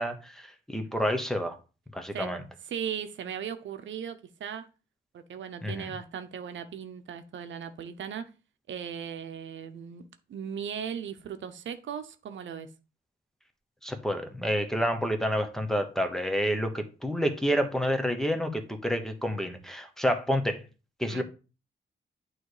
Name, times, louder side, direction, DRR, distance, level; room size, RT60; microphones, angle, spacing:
voice 1, 0.0-1.6 1.9-2.4 5.6-5.9 13.8-20.6 21.0-21.2, equal, ahead, 1.0 m, -29 dB
voice 2, 2.7-4.7 5.1-8.3 8.7-10.0 10.3-12.7 21.1-21.2, right 8 dB, 80° right, 0.7 m, -37 dB
8.9 x 3.2 x 4.8 m
wide cardioid pair, 110°, 19 cm